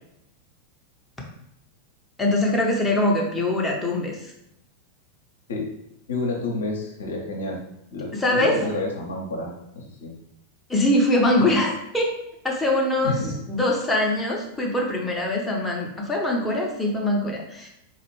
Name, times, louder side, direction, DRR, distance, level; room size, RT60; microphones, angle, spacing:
voice 1, 2.2-4.2 8.2-8.5 10.7-12.1 12.4-13.2 13.5-17.7, left 1 dB, 10° left, -2 dB, 0.8 m, -22 dB
voice 2, 6.1-7.6 7.9-10.2 11.4-11.5 13.0-13.4, left 2 dB, 65° left, 0 dB, 0.7 m, -29 dB
4.1 x 2.4 x 3.1 m, 0.80 s
figure-of-eight pair, 90°, 0 cm